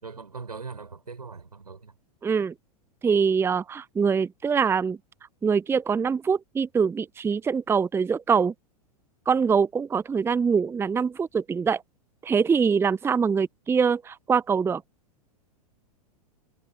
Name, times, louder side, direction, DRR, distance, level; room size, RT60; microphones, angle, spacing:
voice 1, 0.0-1.9, right 4 dB, 80° right, 5.4 m, -40 dB
voice 2, 2.2-2.5 3.0-5.0 5.4-8.5 9.3-11.8 12.2-14.8, right 6 dB, 10° right, 0.7 m, -24 dB
figure-of-eight pair, 95°, 20 cm